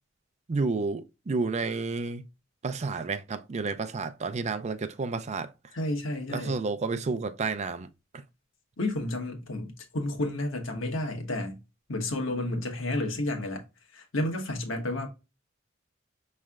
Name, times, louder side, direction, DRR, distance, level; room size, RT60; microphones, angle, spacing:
voice 1, 0.5-2.2 2.6-5.5 6.3-7.9 8.1-8.2, right 4 dB, 35° right, 0.4 m, -30 dB
voice 2, 5.7-6.5 8.8-11.6 11.9-13.6 13.9-15.1, left 1 dB, 75° left, 1.2 m, -31 dB
5.5 x 3.2 x 2.3 m
head